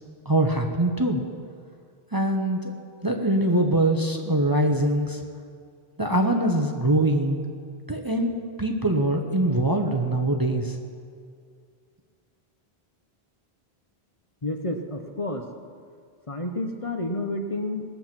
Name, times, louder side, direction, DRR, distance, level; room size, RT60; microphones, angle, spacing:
voice 1, 0.3-1.2 2.1-2.7 3.0-5.2 6.0-7.4 7.9-8.3 8.6-10.8, right 1 dB, 25° right, 2 dB, 0.8 m, -23 dB
voice 2, 14.4-15.5 16.3-17.8, left 1 dB, 35° left, 4 dB, 0.9 m, -30 dB
19.5 x 7.6 x 6.0 m, 2.2 s
omnidirectional pair, 1.1 m